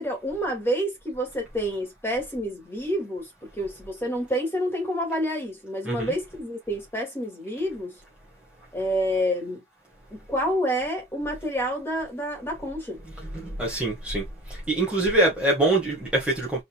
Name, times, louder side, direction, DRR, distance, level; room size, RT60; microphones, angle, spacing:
voice 1, 0.0-8.0 8.7-9.6 10.1-13.0, equal, 15° left, 2.6 m, -28 dB
voice 2, 13.3-14.2 14.7-16.6, right 2 dB, 5° right, 2.1 m, -24 dB
5.1 x 4.2 x 2.4 m
head